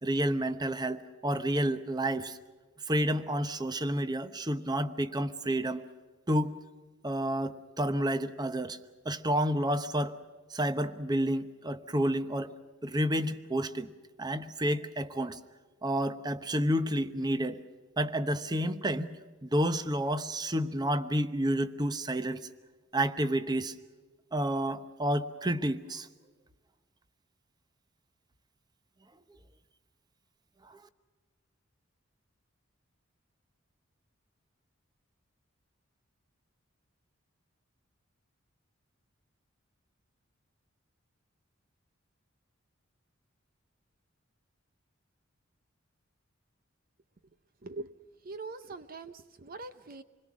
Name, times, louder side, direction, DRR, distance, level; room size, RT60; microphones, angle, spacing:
voice 1, 0.0-2.4 2.9-5.8 6.3-6.6 7.0-8.8 9.0-10.2 10.5-12.5 12.8-13.9 14.2-15.4 15.8-17.6 18.0-19.1 19.4-22.4 22.9-23.7 24.3-26.1, right 1 dB, 20° right, 11 dB, 0.9 m, -30 dB
voice 2, 48.2-50.0, right 3 dB, 45° right, 11 dB, 0.7 m, -42 dB
27.5 x 21.0 x 6.2 m, 1.4 s
head